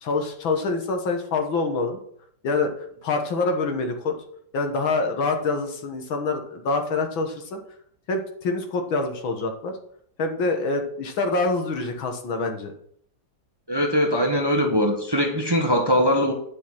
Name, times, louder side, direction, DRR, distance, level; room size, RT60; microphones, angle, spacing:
voice 1, 0.0-2.0 2.4-2.7 3.0-4.2 4.5-7.6 8.1-9.7 10.2-12.7, left 3 dB, 80° left, 4 dB, 2.3 m, -25 dB
voice 2, 13.7-16.3, equal, 15° right, 2 dB, 1.1 m, -21 dB
10.0 x 6.1 x 6.1 m, 0.66 s
omnidirectional pair, 2.1 m